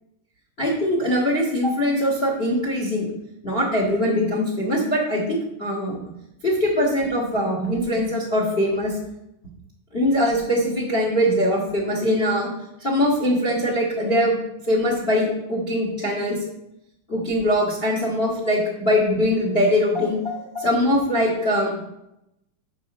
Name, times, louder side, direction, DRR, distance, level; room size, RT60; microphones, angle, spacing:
voice 1, 0.6-3.1 3.4-6.0 6.4-8.9 9.9-12.5 12.8-14.4 14.7-16.4 17.1-20.2 20.5-21.8, equal, 35° left, -2 dB, 0.9 m, -22 dB
6.3 x 5.6 x 7.1 m, 0.84 s
omnidirectional pair, 4.0 m